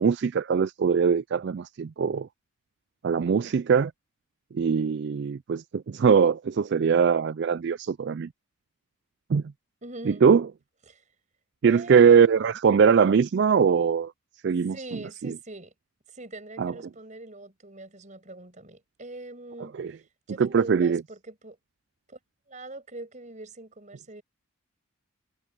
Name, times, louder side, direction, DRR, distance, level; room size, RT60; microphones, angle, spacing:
voice 1, 0.0-2.3 3.0-3.9 4.5-8.3 9.3-9.4 10.0-10.5 11.6-14.1 14.4-15.4 16.6-16.8 19.8-20.0 20.3-21.0, right 6 dB, 50° right, 0.3 m, -22 dB
voice 2, 9.8-10.2 10.9-11.0 11.6-12.5 14.7-15.7 16.1-19.7 20.3-21.6 22.1-22.2 22.5-24.2, right 2 dB, 35° right, 5.9 m, -42 dB
head